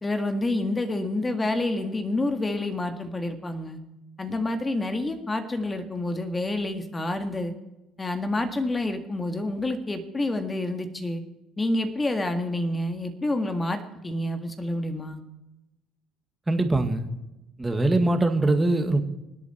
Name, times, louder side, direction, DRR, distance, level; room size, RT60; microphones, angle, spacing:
voice 1, 0.0-3.8 4.2-7.5 8.0-11.2 11.6-15.2, left 2 dB, 20° left, 7 dB, 1.8 m, -28 dB
voice 2, 16.5-17.1 17.6-19.0, right 2 dB, 15° right, 6 dB, 1.9 m, -22 dB
24.5 x 8.4 x 4.4 m, 0.95 s
supercardioid pair, 85°, 0 cm